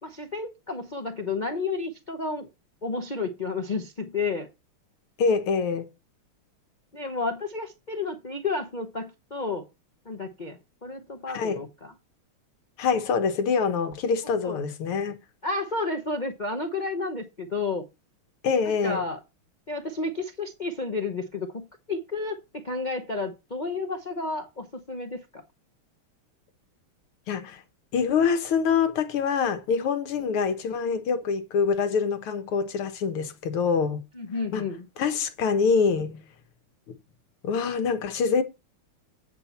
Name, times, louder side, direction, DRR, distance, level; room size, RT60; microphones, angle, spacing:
voice 1, 0.0-2.5 2.8-4.5 6.9-9.7 10.0-11.9 14.4-14.6 15.4-17.8 18.8-19.2 19.7-25.4 34.1-34.9, left 3 dB, 40° left, 0.6 m, -31 dB
voice 2, 5.2-5.9 11.3-11.6 12.8-15.2 18.4-19.0 27.3-27.6 27.9-34.0 34.5-34.7 35.0-36.2 37.4-38.4, left 5 dB, 80° left, 2.1 m, -25 dB
9.0 x 4.4 x 7.0 m
omnidirectional pair, 2.3 m